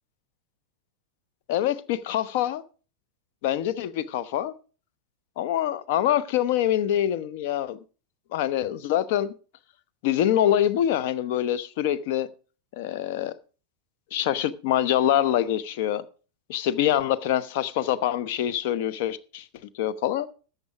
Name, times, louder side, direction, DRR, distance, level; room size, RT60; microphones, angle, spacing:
voice 1, 1.5-2.6 3.4-4.5 5.4-7.8 8.3-9.3 10.0-12.3 12.7-13.3 14.1-16.0 16.5-19.4 19.7-20.3, left 11 dB, 50° left, 0.9 m, -25 dB
13.5 x 8.1 x 5.1 m
figure-of-eight pair, 90°, 0 cm